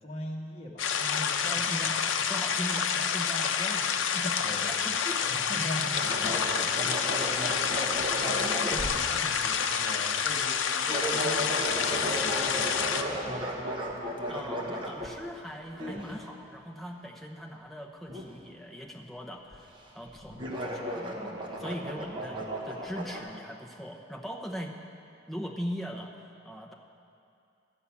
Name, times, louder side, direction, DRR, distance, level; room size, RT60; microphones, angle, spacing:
voice 1, 0.0-1.9 2.3-2.4 4.4-4.8 5.2-7.0 7.3-10.6 11.0-13.0 14.4-14.5 20.3-20.9, left 1 dB, 35° left, -3 dB, 1.5 m, -42 dB
sound 1, 0.8-13.0, left 7 dB, 85° left, 0.6 m, -28 dB
voice 2, 1.4-5.2 6.3-7.3 14.3-24.7 25.3-26.7, equal, ahead, -1 dB, 0.8 m, -40 dB
sound 2, 5.9-9.7 10.3-10.5 10.8-15.3 15.8-16.2 18.1-18.3 19.5-19.8 20.0-23.2, equal, 25° right, 1.1 m, -35 dB
13.0 x 5.6 x 8.5 m, 2.5 s
head